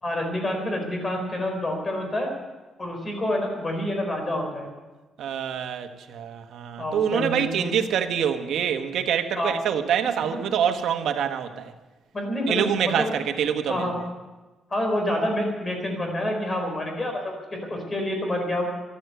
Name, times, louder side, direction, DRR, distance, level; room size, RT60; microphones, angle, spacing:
voice 1, 0.0-2.3 2.8-4.7 6.8-7.7 9.3-9.5 10.3-10.4 12.1-13.1 13.7-13.9 14.7-18.7, left 1 dB, 25° left, 3 dB, 4.4 m, -28 dB
voice 2, 5.2-11.7 12.5-13.9, right 8 dB, 80° right, 7 dB, 1.2 m, -25 dB
13.0 x 12.5 x 7.9 m, 1.2 s
cardioid pair, 125°, 0 cm